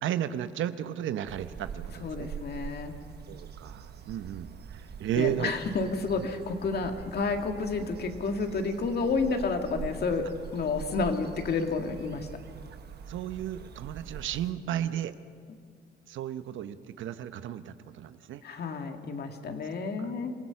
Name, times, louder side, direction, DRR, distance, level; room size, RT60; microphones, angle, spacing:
voice 1, 0.0-2.3 3.3-5.5 13.1-15.1 16.1-18.4 20.0-20.1, right 11 dB, 75° right, 11 dB, 0.9 m, -34 dB
sound 1, 1.3-14.5, right 7 dB, 55° right, 1.2 m, -44 dB
voice 2, 2.0-2.9 5.1-10.3 10.5-12.3 18.4-20.3, left 4 dB, 55° left, 5 dB, 2.0 m, -30 dB
26.5 x 17.0 x 5.8 m, 2.2 s
cardioid pair, 90°, 20 cm